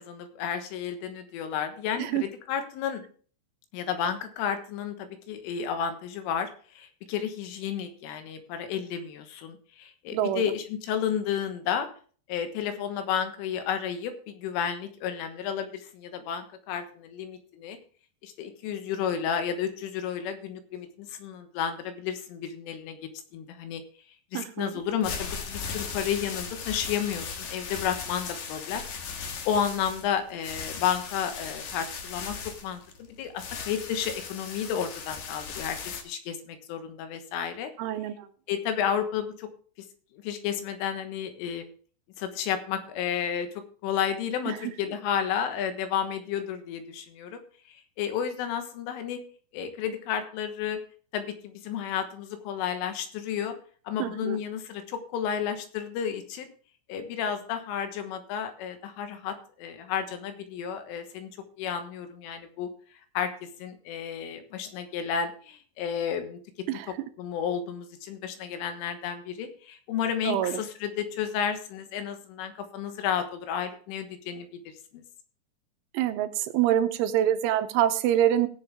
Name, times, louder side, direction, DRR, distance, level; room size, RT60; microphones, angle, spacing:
voice 1, 0.0-3.0 3.7-11.9 12.3-17.8 18.2-23.0 23.3-23.8 24.3-28.8 29.5-32.4 32.6-35.8 36.1-37.7 38.5-39.5 40.2-41.7 42.2-47.4 47.7-49.2 49.5-50.8 51.1-53.6 53.9-56.5 56.9-61.3 61.6-62.7 63.2-63.3 63.6-66.4 66.7-74.5 74.9-75.0, left 8 dB, 85° left, 8 dB, 3.9 m, -32 dB
voice 2, 10.1-10.4 24.3-24.7 37.8-38.3 44.5-44.6 54.0-54.4 66.7-66.9 70.3-70.6 75.9-78.5, right 11 dB, 80° right, 9 dB, 3.2 m, -25 dB
sound 1, 24.8-36.0, left 6 dB, 65° left, 1.9 m, -38 dB
16.5 x 7.9 x 3.5 m, 0.42 s
omnidirectional pair, 5.6 m